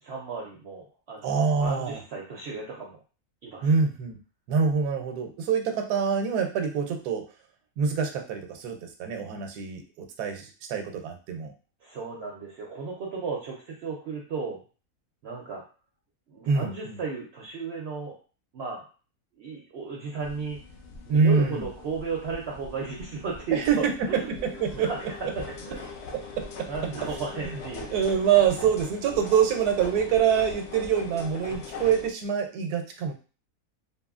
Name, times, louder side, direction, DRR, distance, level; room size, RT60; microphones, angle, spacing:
voice 1, 0.0-3.0 3.4-3.7 11.8-14.6 15.2-15.6 16.3-18.1 18.5-18.9 19.4-20.6 21.1-24.3 24.7-25.0 25.4-25.9 26.7-27.9, right 4 dB, 70° right, -2 dB, 0.6 m, -34 dB
voice 2, 1.2-2.0 3.6-4.2 4.5-7.2 7.8-11.5 16.5-17.0 21.1-21.6 23.5-24.9 26.1-26.7 27.0-27.1 27.5-27.6 27.9-33.1, right 6 dB, 90° right, 6 dB, 1.1 m, -25 dB
sound 1, 20.2-32.1, left 4 dB, 70° left, 0.7 m, -41 dB
2.7 x 2.6 x 2.3 m, 0.36 s
omnidirectional pair, 1.6 m